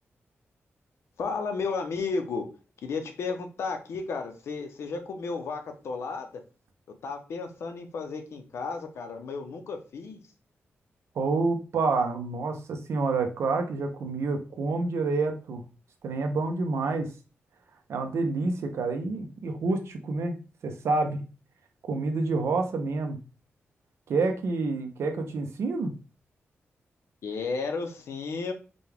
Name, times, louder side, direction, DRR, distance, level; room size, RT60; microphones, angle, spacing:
voice 1, 1.2-2.5 2.8-6.4 7.0-10.2 27.2-28.5, left 4 dB, 80° left, 5 dB, 0.7 m, -33 dB
voice 2, 11.1-15.6 16.0-17.1 17.9-20.4 20.6-21.3 21.8-23.2 24.1-25.9, right 3 dB, 85° right, 6 dB, 0.7 m, -28 dB
5.1 x 2.3 x 3.4 m, 0.34 s
wide cardioid pair, 165°, 4 cm